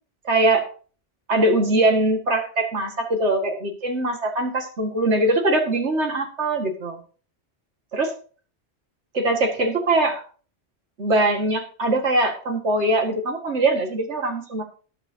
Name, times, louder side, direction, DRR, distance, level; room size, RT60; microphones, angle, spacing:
voice 1, 0.2-0.7 1.3-7.0 7.9-8.1 9.1-10.2 11.0-14.6, right 2 dB, 90° right, 3 dB, 2.2 m, -22 dB
18.5 x 7.1 x 2.8 m, 0.39 s
omnidirectional pair, 1.1 m